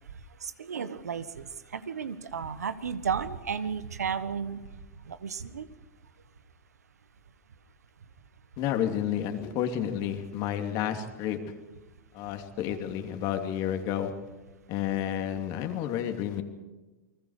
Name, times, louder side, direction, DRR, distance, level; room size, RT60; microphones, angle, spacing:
voice 1, 0.4-4.6 5.1-5.7, right 6 dB, 90° right, 13 dB, 1.3 m, -33 dB
voice 2, 8.6-11.4 12.1-14.1 14.7-16.4, left 10 dB, 50° left, 6 dB, 2.8 m, -30 dB
29.5 x 20.5 x 5.0 m, 1.2 s
hypercardioid pair, 105°, 8 cm